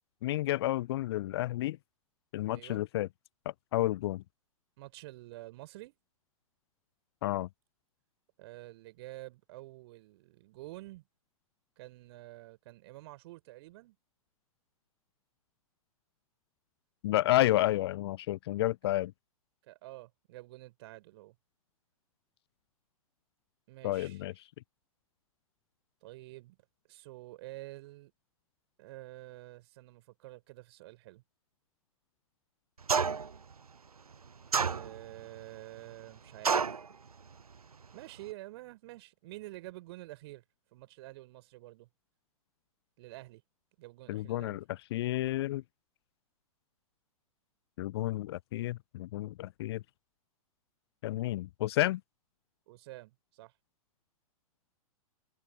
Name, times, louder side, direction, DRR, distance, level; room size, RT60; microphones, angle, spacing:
voice 1, 0.2-1.8 2.3-3.1 3.7-4.2 7.2-7.5 17.0-19.1 23.8-24.3 44.1-45.6 47.8-49.8 51.0-52.0, left 15 dB, 45° left, 0.5 m, -31 dB
voice 2, 2.5-2.8 4.8-6.0 8.4-11.0 11.8-14.0 19.6-21.3 23.7-24.2 26.0-26.6 26.9-28.1 28.8-31.2 34.6-36.6 37.9-40.4 40.7-41.9 43.0-43.4 43.8-44.6 52.7-53.5, right 19 dB, 45° right, 5.1 m, -48 dB
sound 1, 32.9-33.4 34.5-35.2 36.4-36.9, right 5 dB, 80° right, 0.7 m, -28 dB
figure-of-eight pair, 105°, 19 cm